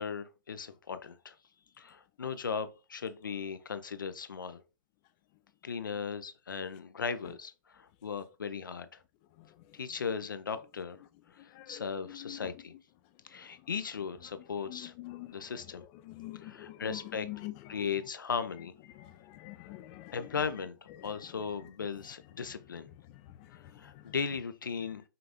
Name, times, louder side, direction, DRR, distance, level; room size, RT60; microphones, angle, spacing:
voice 1, 0.0-1.3 1.8-4.6 5.6-9.0 9.7-11.0 11.3-12.8 13.2-14.9 15.3-15.8 16.4-17.3 17.7-18.7 20.1-20.8 21.0-22.9 23.8-25.0, left 6 dB, 85° left, 0.6 m, -37 dB
voice 2, 14.7-15.3 16.1-16.8 17.2-17.5 19.3-20.2, left 17 dB, 25° left, 0.3 m, -44 dB
5.7 x 2.5 x 3.5 m
hypercardioid pair, 140°, 11 cm